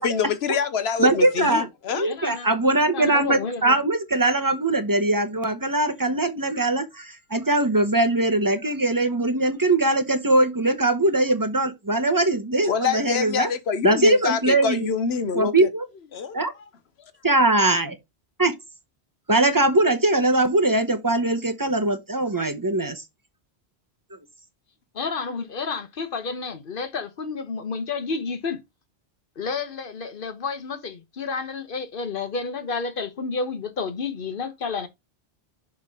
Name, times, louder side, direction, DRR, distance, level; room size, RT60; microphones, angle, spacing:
voice 1, 0.0-2.1 12.6-15.7 16.1-16.4, left 6 dB, 75° left, 1.2 m, -26 dB
voice 2, 1.0-1.7 1.9-13.5 13.8-14.9 15.3-15.8 16.3-16.5 17.2-18.0 18.4-18.5 19.3-23.0, right 2 dB, 20° right, 0.8 m, -21 dB
voice 3, 2.0-2.5 2.9-3.8 24.9-28.6 29.4-34.9, left 4 dB, 55° left, 1.2 m, -30 dB
6.6 x 3.6 x 4.8 m
omnidirectional pair, 1.1 m